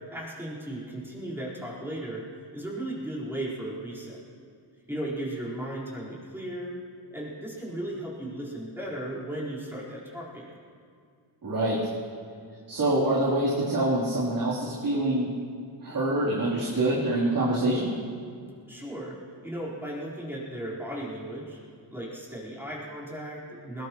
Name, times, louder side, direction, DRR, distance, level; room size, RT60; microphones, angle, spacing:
voice 1, 0.1-2.2 2.5-4.2 4.9-6.7 7.1-10.6 18.7-19.2 19.4-21.6 21.9-23.9, right 1 dB, 5° right, -7 dB, 4.4 m, -36 dB
voice 2, 11.4-11.8 12.7-15.3 15.8-17.9, right 1 dB, 50° right, -8 dB, 3.5 m, -25 dB
21.0 x 18.0 x 3.1 m, 2.2 s
cardioid pair, 110°, 43 cm